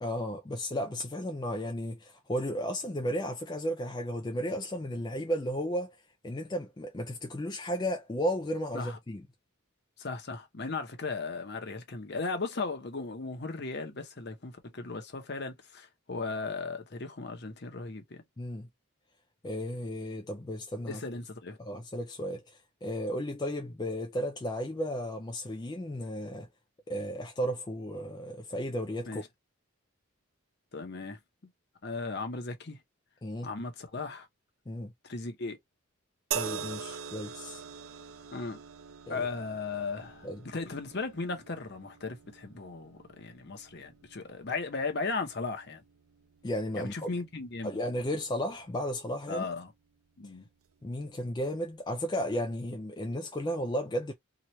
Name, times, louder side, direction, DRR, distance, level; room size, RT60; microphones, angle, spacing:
voice 1, 0.0-6.0 6.2-9.2 18.4-18.7 19.4-21.0 21.6-26.5 26.9-29.2 33.2-33.5 34.7-34.9 36.3-37.6 39.1-39.3 40.2-40.4 46.4-47.1 47.6-49.5 50.8-54.1, equal, 20° left, 0.3 m, -34 dB
voice 2, 10.0-18.2 20.9-21.6 29.0-29.3 30.7-31.2 31.8-32.8 33.4-34.3 35.0-35.6 36.9-37.0 38.3-38.6 39.1-45.8 46.8-47.8 49.3-49.7 50.2-50.5, left 3 dB, 50° left, 0.8 m, -36 dB
sound 1, 36.3-49.6 50.6-50.8, right 7 dB, 80° right, 0.5 m, -44 dB
2.9 x 2.4 x 3.0 m
head